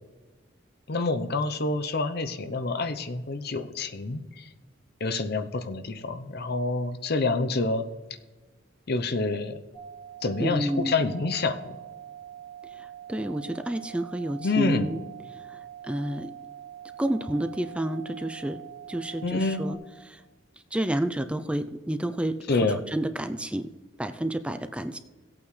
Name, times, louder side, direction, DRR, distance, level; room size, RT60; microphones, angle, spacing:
voice 1, 0.9-4.4 5.0-7.8 8.9-9.6 10.2-11.6 14.4-14.9 19.2-19.6 22.5-22.8, left 3 dB, 55° left, 9 dB, 0.7 m, -27 dB
sound 1, 9.7-19.7, right 10 dB, 80° right, 1.8 m, -44 dB
voice 2, 10.4-11.0 12.7-15.0 15.3-16.3 17.0-18.6 18.9-19.8 20.1-20.2 20.7-22.6 22.9-23.7 24.0-25.0, right 1 dB, 5° right, 9 dB, 0.4 m, -30 dB
18.0 x 8.5 x 3.2 m, 1.3 s
head